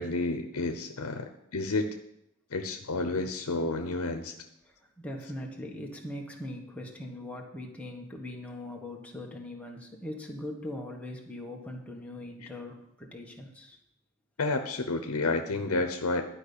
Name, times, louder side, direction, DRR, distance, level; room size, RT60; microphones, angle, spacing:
voice 1, 0.0-1.9 2.5-4.3 14.4-16.2, left 3 dB, 85° left, 6 dB, 0.9 m, -30 dB
voice 2, 4.6-13.8, left 1 dB, 5° left, 0 dB, 1.5 m, -41 dB
11.5 x 5.5 x 8.5 m, 0.80 s
head